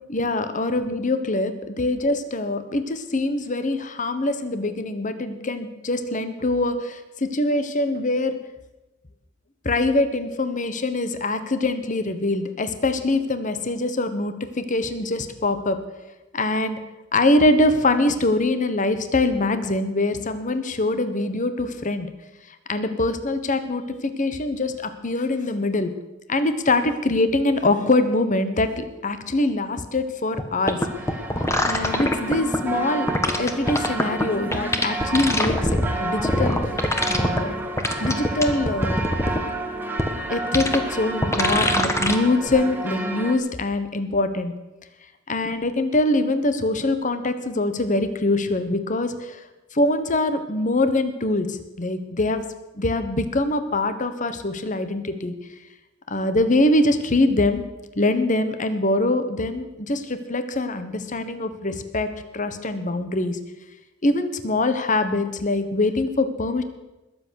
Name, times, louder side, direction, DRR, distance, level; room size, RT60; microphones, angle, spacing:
voice 1, 0.1-8.4 9.6-15.8 16.3-16.8 17.1-22.1 22.7-25.9 26.3-30.8 31.6-36.6 37.1-37.5 38.0-39.1 40.3-44.5 45.3-49.4 49.7-52.4 52.7-55.3 56.1-57.6 58.0-62.1 62.3-63.4 64.0-66.6, left 2 dB, 40° left, 10 dB, 1.2 m, -23 dB
sound 1, 30.4-30.5 30.7-32.6 33.1-34.2 34.5-35.9 36.2-37.4 37.8-39.4 40.0-40.1 40.5-40.8 41.2-42.2 42.5-42.6, left 1 dB, 15° left, 1.3 m, -22 dB
sound 2, 30.8-43.4, right 2 dB, 10° right, 1.5 m, -30 dB
20.5 x 8.2 x 6.5 m, 1.0 s
head